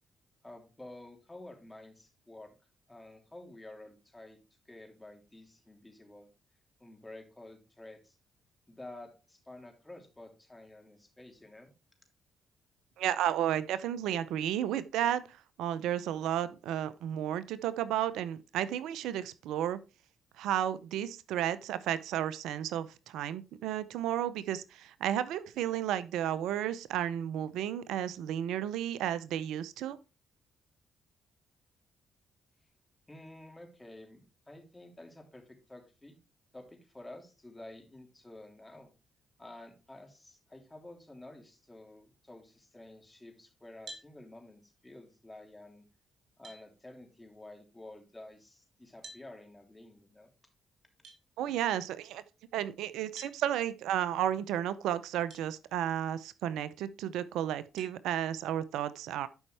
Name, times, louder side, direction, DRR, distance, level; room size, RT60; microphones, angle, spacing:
voice 1, 0.4-2.5 2.9-4.4 4.7-6.3 6.8-8.2 8.7-11.7 33.1-36.2 36.5-38.9 39.4-45.8 46.4-50.3, left 1 dB, 15° left, 3.1 m, -51 dB
voice 2, 13.0-19.8 20.4-30.0 51.4-52.2 52.5-59.3, right 11 dB, 80° right, 0.5 m, -33 dB
sound 1, 43.9-44.1 45.8-45.9 46.4-46.6 49.0-49.3 51.0-51.2 53.2-53.4 55.3-55.4 56.1-56.2 57.8-58.0, right 2 dB, 65° right, 2.6 m, -48 dB
11.5 x 5.4 x 3.3 m
supercardioid pair, 55°, 0 cm